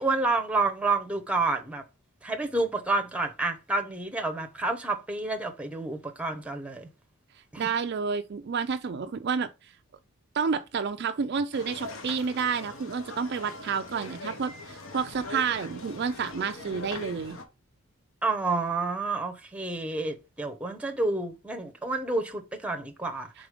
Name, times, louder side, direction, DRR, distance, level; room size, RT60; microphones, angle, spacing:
voice 1, 0.0-1.8 2.2-6.9 7.5-7.7 18.2-23.3, right 3 dB, 5° right, 0.8 m, -29 dB
voice 2, 7.6-9.5 10.3-17.4, right 5 dB, 50° right, 0.4 m, -30 dB
sound 1, 11.5-17.4, left 2 dB, 65° left, 1.1 m, -42 dB
4.9 x 4.1 x 5.0 m
head